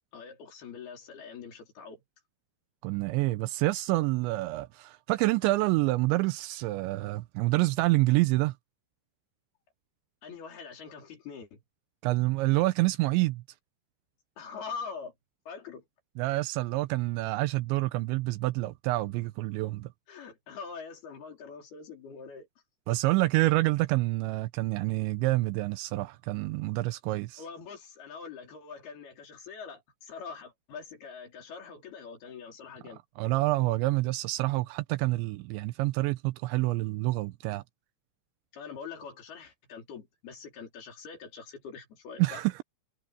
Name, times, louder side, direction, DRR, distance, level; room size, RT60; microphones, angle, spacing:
voice 1, 0.1-2.0 10.2-11.6 14.4-15.1 15.5-15.9 20.1-22.5 22.9-23.0 27.4-33.0 38.5-42.4, left 5 dB, 50° left, 5.7 m, -43 dB
voice 2, 2.8-8.5 12.0-13.4 16.2-19.9 22.9-27.4 33.2-37.6 42.2-42.6, right 19 dB, 90° right, 2.6 m, -27 dB
omnidirectional pair, 5.9 m